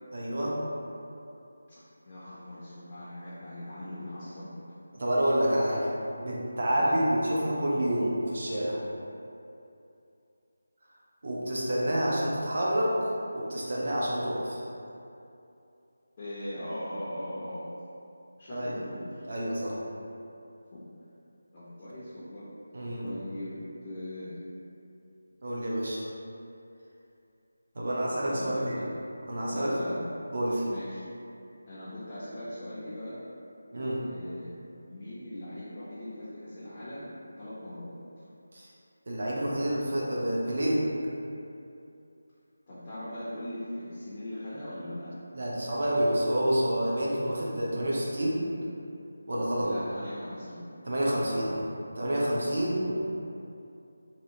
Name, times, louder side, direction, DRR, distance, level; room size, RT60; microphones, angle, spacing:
voice 1, 0.1-0.6 4.9-5.9 6.2-8.8 11.2-14.6 18.5-18.7 19.3-19.8 22.7-23.0 25.4-26.0 27.7-28.8 29.3-29.7 30.3-30.7 33.7-34.1 38.5-38.7 39.1-40.8 45.3-48.4 49.3-49.7 50.9-51.6 52.0-52.9, right 1 dB, 50° right, -5 dB, 0.6 m, -28 dB
voice 2, 2.0-4.5 6.7-7.0 16.2-17.7 18.4-19.3 20.7-20.8 21.5-22.4 23.0-24.3 28.2-28.9 29.5-30.1 30.6-31.0 31.7-33.2 34.0-34.5 34.9-38.3 42.7-45.1 49.6-50.6 52.5-52.7, left 1 dB, 30° left, -11 dB, 0.5 m, -40 dB
2.8 x 2.0 x 2.6 m, 2.7 s
figure-of-eight pair, 170°, 0 cm